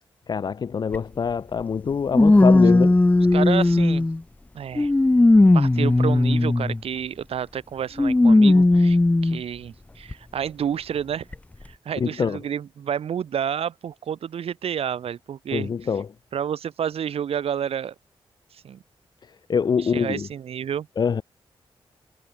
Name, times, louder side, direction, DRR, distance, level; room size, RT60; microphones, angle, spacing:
voice 1, 0.3-2.9 12.0-12.4 15.5-16.1 19.2-20.3 21.0-21.2, left 6 dB, 45° left, 1.2 m, -25 dB
sound 1, 0.9-1.0 2.1-4.2 4.8-6.8 8.0-9.4 10.1-10.2 11.3-11.4, left 2 dB, 15° left, 1.5 m, -17 dB
voice 2, 3.3-4.1 4.5-4.9 5.5-9.0 9.2-11.3 11.6-15.7 16.3-17.9 18.6-18.8 19.9-20.9, right 8 dB, 80° right, 3.4 m, -29 dB
wide cardioid pair, 160°, 10 cm